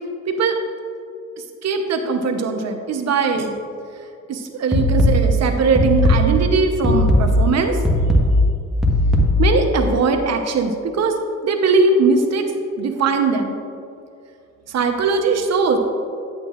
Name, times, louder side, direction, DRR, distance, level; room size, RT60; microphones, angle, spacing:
voice 1, 0.3-0.6 1.6-3.5 4.3-7.8 9.4-11.2 11.4-12.5 12.8-13.6 14.7-15.8, right 4 dB, 60° right, 5 dB, 0.9 m, -20 dB
sound 1, 4.7-9.7, left 1 dB, ahead, 1.2 m, -17 dB
9.8 x 8.3 x 2.4 m, 2.5 s
cardioid pair, 90°, 30 cm